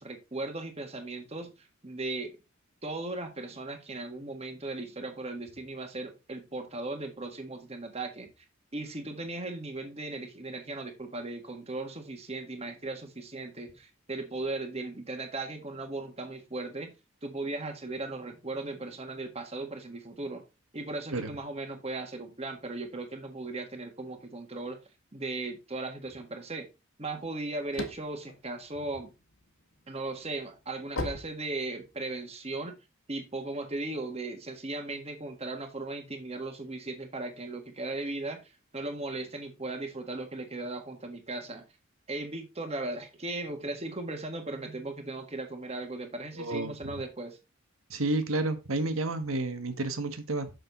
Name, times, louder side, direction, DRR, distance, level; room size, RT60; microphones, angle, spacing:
voice 1, 0.0-2.4 2.8-8.3 8.7-16.9 17.2-20.4 20.7-24.8 25.1-26.7 27.0-29.1 29.9-32.8 33.1-41.6 42.1-47.4, right 2 dB, 30° right, 1.6 m, -37 dB
sound 1, 27.2-29.4 29.9-32.1, left 2 dB, 70° left, 1.7 m, -37 dB
voice 2, 46.4-47.0 47.9-50.5, right 2 dB, 80° right, 1.4 m, -31 dB
6.7 x 6.6 x 4.0 m
head